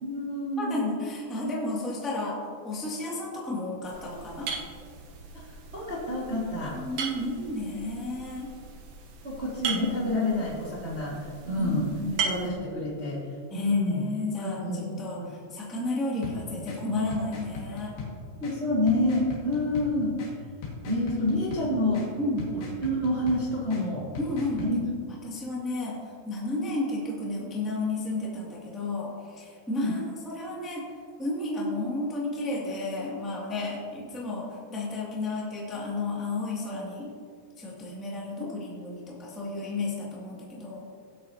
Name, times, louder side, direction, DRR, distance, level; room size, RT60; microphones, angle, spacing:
voice 1, 0.0-0.9 3.0-3.1 5.7-6.7 9.2-11.8 12.2-13.2 13.5-14.0 14.4-15.3 18.4-20.1 20.8-22.0 22.8-24.0 24.6-24.8 29.8-29.9 38.4-38.5, left 1 dB, 45° right, -7 dB, 0.7 m, -28 dB
voice 2, 0.6-4.5 6.6-8.5 11.6-12.4 13.5-18.0 22.2-22.5 24.2-24.6 25.2-26.0 26.2-30.9 31.2-37.1 37.6-40.8, left 2 dB, ahead, -6 dB, 0.5 m, -32 dB
sound 1, 3.8-12.5, right 5 dB, 75° right, 1.8 m, -37 dB
sound 2, 16.2-24.7, left 3 dB, 90° left, 4.2 m, -40 dB
18.0 x 8.5 x 2.9 m, 2.2 s
omnidirectional pair, 4.9 m